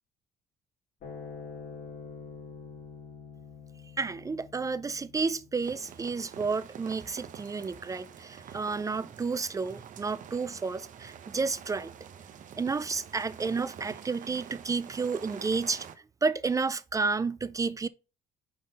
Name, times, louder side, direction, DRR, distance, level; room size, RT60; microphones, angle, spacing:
sound 1, 1.0-7.7, left 5 dB, 60° left, 3.1 m, -47 dB
voice 1, 4.0-11.9 12.6-15.9 16.2-17.9, right 4 dB, 20° right, 0.3 m, -31 dB
sound 2, 5.6-15.9, right 8 dB, 50° right, 0.8 m, -47 dB
5.5 x 3.8 x 5.1 m
cardioid pair, 110°, 17 cm